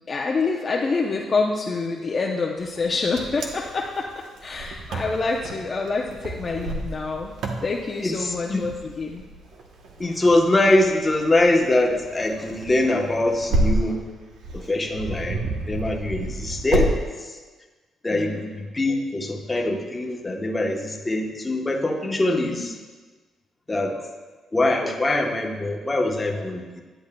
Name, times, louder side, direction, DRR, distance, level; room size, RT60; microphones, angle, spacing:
voice 1, 0.1-7.3 7.6-9.2 18.1-18.5 22.3-22.7, left 4 dB, 40° left, -1 dB, 0.6 m, -27 dB
Wind, 2.8-16.9, right 1 dB, 75° right, 0.9 m, -30 dB
voice 2, 8.0-8.6 10.0-14.0 14.5-15.4 15.7-16.9 18.0-22.7 23.7-24.0 24.5-26.8, left 2 dB, 20° left, 1 dB, 1.0 m, -23 dB
10.5 x 7.9 x 2.2 m, 1.3 s
cardioid pair, 90°, 0 cm